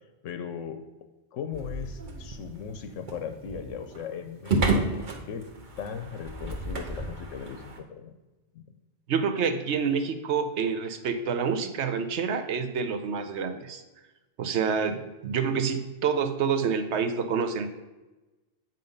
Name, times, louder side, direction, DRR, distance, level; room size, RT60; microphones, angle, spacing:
voice 1, 0.2-0.8 1.3-5.5 5.8-8.2 8.5-8.6, left 7 dB, 85° left, 8 dB, 1.0 m, -38 dB
sound 1, 1.5-7.8, right 3 dB, 40° right, 1.1 m, -32 dB
voice 2, 9.1-13.8 14.4-17.7, right 6 dB, 65° right, 9 dB, 1.0 m, -27 dB
7.6 x 5.3 x 5.3 m, 1.1 s
omnidirectional pair, 1.3 m